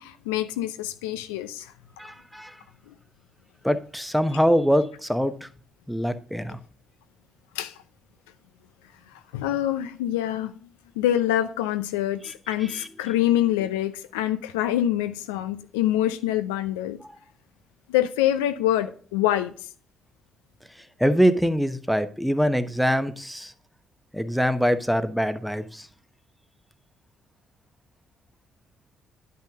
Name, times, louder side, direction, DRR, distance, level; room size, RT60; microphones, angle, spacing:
voice 1, 0.0-1.7 2.9-3.0 7.5-7.7 9.3-10.6 11.0-17.0 17.9-19.5, left 12 dB, 80° left, 0.5 m, -25 dB
voice 2, 2.0-2.5 3.6-5.5 5.9-6.6 12.2-12.3 12.7-12.9 21.0-23.5 24.1-25.9, equal, ahead, 1.0 m, -24 dB
10.5 x 5.7 x 3.6 m
hypercardioid pair, 45°, 0 cm